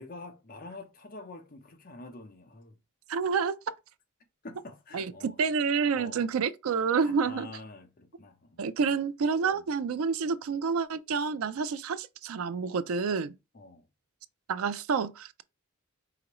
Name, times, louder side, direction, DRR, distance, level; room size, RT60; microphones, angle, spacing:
voice 1, 0.0-2.8 4.4-5.4 5.9-6.3 7.0-8.6 9.5-9.7 13.5-13.9, left 2 dB, 40° left, 0.7 m, -46 dB
voice 2, 3.1-3.6 4.9-5.1 5.4-7.5 8.6-13.3 14.5-15.4, right 5 dB, 75° right, 0.4 m, -28 dB
4.9 x 2.9 x 3.0 m
head